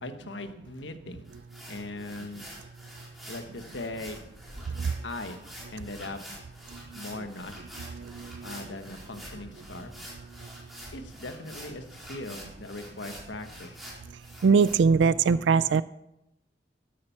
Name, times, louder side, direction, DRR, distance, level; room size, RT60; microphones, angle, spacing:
voice 1, 0.0-1.3 1.7-2.4 3.3-4.2 5.0-5.4 5.7-6.2 6.9-7.5 8.4-9.9 10.9-13.7, left 2 dB, 90° left, 8 dB, 1.3 m, -39 dB
sound 1, 1.3-14.8, equal, ahead, 4.3 m, -46 dB
voice 2, 7.9-8.5 14.4-15.8, right 5 dB, 85° right, 17 dB, 0.4 m, -22 dB
13.0 x 11.5 x 5.9 m, 0.87 s
head